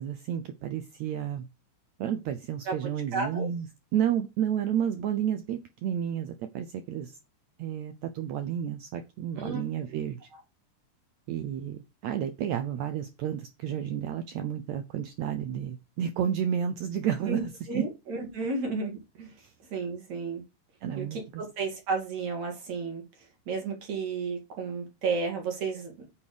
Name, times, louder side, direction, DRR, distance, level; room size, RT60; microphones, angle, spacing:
voice 1, 0.0-1.4 2.0-3.7 3.9-7.2 7.6-10.2 11.3-17.4 17.7-17.8 19.4-19.5 20.8-21.4, right 9 dB, 80° right, 1.6 m, -31 dB
voice 2, 2.7-3.5 9.4-9.6 17.3-19.3 19.7-20.4 21.0-23.0 23.5-25.9, right 4 dB, 55° right, 3.3 m, -32 dB
8.5 x 6.8 x 5.0 m
omnidirectional pair, 4.1 m